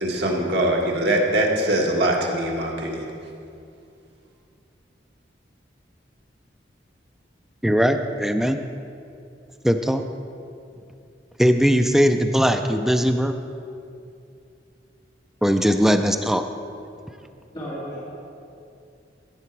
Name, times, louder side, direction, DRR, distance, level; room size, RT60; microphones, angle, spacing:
voice 1, 0.0-3.1, right 1 dB, 70° right, -1 dB, 1.6 m, -22 dB
voice 2, 7.6-8.6 9.6-10.0 11.4-13.3 15.4-16.4, equal, ahead, 6 dB, 0.3 m, -19 dB
voice 3, 17.2-18.0, equal, 30° left, -9 dB, 2.5 m, -35 dB
15.5 x 6.8 x 4.7 m, 2.5 s
head